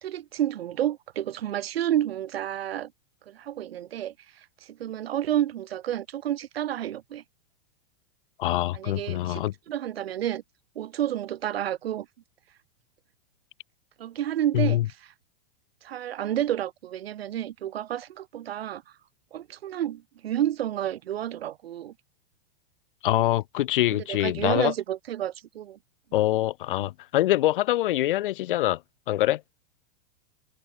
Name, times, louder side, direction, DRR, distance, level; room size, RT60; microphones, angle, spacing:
voice 1, 0.0-2.9 3.3-4.1 4.7-7.2 8.7-10.4 10.7-12.1 14.0-14.8 15.8-18.8 19.3-21.9 23.9-25.8, right 11 dB, 90° right, 4.7 m, -30 dB
voice 2, 8.4-9.5 14.5-14.9 23.0-24.7 26.1-28.8 29.1-29.4, left 15 dB, 60° left, 3.9 m, -24 dB
supercardioid pair, 170°, 29 cm